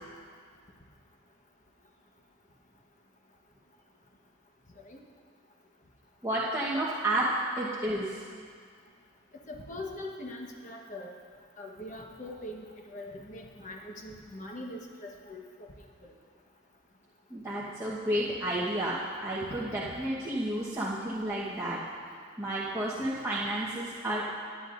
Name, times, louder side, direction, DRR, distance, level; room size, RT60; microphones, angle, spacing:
voice 1, 6.2-7.3 7.5-8.2 17.3-21.8 22.4-24.3, right 1 dB, 15° right, -9 dB, 1.2 m, -31 dB
voice 2, 9.5-11.1 11.6-15.7 19.4-19.5, left 1 dB, 40° left, 0 dB, 1.2 m, -42 dB
19.0 x 10.0 x 2.6 m, 2.1 s
head